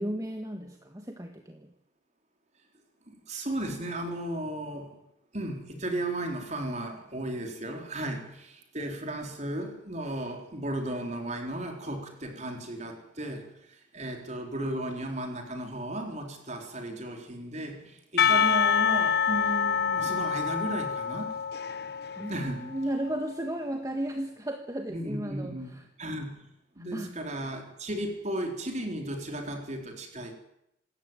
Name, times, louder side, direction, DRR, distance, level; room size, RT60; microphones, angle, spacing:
voice 1, 0.0-1.7 22.2-25.8 26.9-27.2, right 1 dB, 15° right, 1.6 m, -34 dB
voice 2, 3.1-5.0 5.3-21.4 22.3-22.7 24.9-26.5 26.7-30.3, right 1 dB, 35° right, 4.2 m, -35 dB
Percussion / Church bell, 18.2-23.2, left 7 dB, 55° left, 0.8 m, -27 dB
26.5 x 14.0 x 9.1 m
head